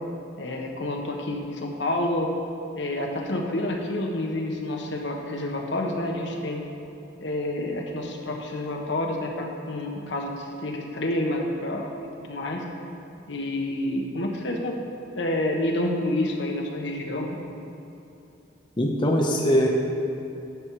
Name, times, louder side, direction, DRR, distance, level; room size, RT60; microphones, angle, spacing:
voice 1, 0.4-2.3 2.7-6.6 7.2-11.9 12.2-12.6 13.3-14.7 15.1-17.3, left 1 dB, 65° left, 0 dB, 1.2 m, -28 dB
voice 2, 18.8-19.7, equal, 25° left, -1 dB, 0.7 m, -21 dB
10.5 x 7.2 x 4.7 m, 2.8 s
head